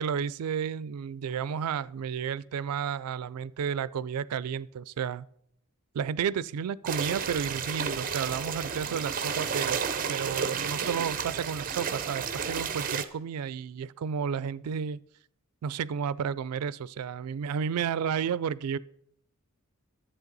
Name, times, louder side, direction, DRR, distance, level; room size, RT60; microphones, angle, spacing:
voice 1, 0.0-5.3 5.9-9.8 10.1-15.0 15.6-18.8, right 7 dB, 80° right, 0.4 m, -32 dB
sound 1, 6.9-13.1, right 6 dB, 40° right, 0.6 m, -32 dB
11.0 x 7.7 x 4.0 m
head